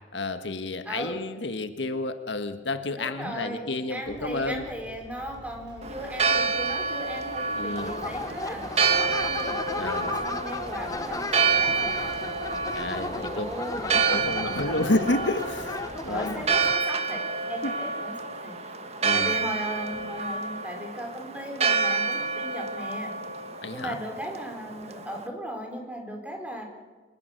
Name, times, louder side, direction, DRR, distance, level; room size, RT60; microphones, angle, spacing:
voice 1, 0.0-4.6 7.5-7.9 9.8-10.2 12.7-13.5 13.9-15.8 16.0-16.4 17.6-17.7 19.0-19.4 23.6-24.0, left 2 dB, 85° left, 8 dB, 1.5 m, -30 dB
voice 2, 0.8-1.2 2.9-8.7 9.0-12.3 12.9-14.7 16.1-17.2 17.5-18.5 19.1-23.1 23.7-26.6, right 1 dB, 10° right, 2 dB, 4.3 m, -37 dB
sound 1, 4.0-16.5, right 1 dB, 85° right, 5.1 m, -49 dB
Church bell, 5.8-25.2, right 5 dB, 35° right, 1.6 m, -29 dB
sound 2, 7.8-16.8, left 3 dB, 20° left, 0.8 m, -35 dB
25.5 x 20.5 x 6.6 m, 1.3 s
head